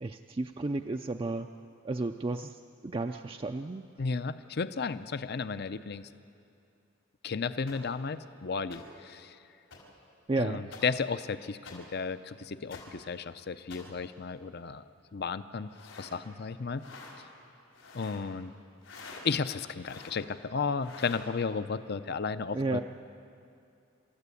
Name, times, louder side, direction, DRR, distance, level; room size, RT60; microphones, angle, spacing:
voice 1, 0.0-1.5 1.8-3.9 10.3-10.6 22.5-22.8, right 2 dB, 25° right, 5 dB, 0.4 m, -33 dB
voice 2, 4.0-6.1 7.2-9.4 10.4-14.8 15.1-15.7 16.0-16.8 17.9-18.5 19.2-22.8, left 5 dB, 50° left, 13 dB, 0.6 m, -33 dB
sound 1, 7.7-7.8 8.7-8.8 9.7-9.8 10.7-10.8 11.6-11.7 12.7-12.8 13.7-13.8 15.7-16.1 16.8-17.1 17.7-18.2 18.8-19.2 19.8-20.2 20.8-21.2, left 4 dB, 85° left, 5.3 m, -47 dB
28.5 x 13.5 x 8.4 m, 2.5 s
head